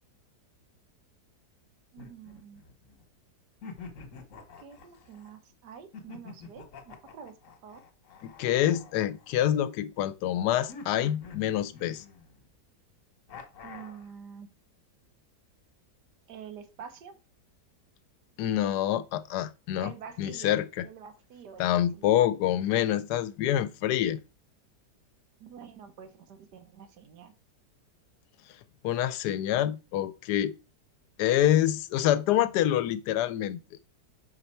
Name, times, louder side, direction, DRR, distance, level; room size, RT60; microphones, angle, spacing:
voice 1, 1.9-2.6 4.6-7.8 13.6-14.5 16.3-17.2 19.8-20.6 20.8-22.1 25.4-27.3, right 7 dB, 85° right, 1.6 m, -47 dB
sound 1, 2.0-3.0 3.6-5.3 5.9-9.7 10.7-12.5 13.3-14.1, left 4 dB, 55° left, 1.4 m, -47 dB
voice 2, 8.2-12.0 18.4-19.9 20.2-20.9 21.6-24.2 28.8-30.5 31.2-33.6, left 12 dB, 80° left, 1.1 m, -26 dB
5.3 x 4.8 x 4.3 m
omnidirectional pair, 1.7 m